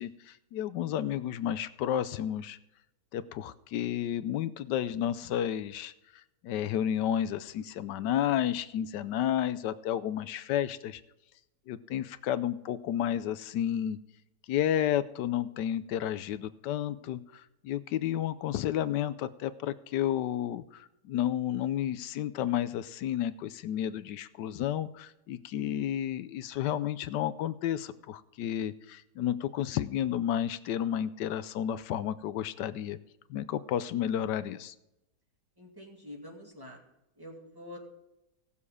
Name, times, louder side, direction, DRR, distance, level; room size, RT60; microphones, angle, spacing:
voice 1, 0.0-2.6 3.1-5.9 6.4-11.0 11.7-14.0 14.5-33.0 33.3-34.7, left 10 dB, 85° left, 14 dB, 1.3 m, -31 dB
voice 2, 35.6-36.8 37.2-37.8, left 1 dB, 15° right, -1 dB, 2.1 m, -47 dB
18.0 x 7.1 x 4.9 m, 0.89 s
omnidirectional pair, 1.8 m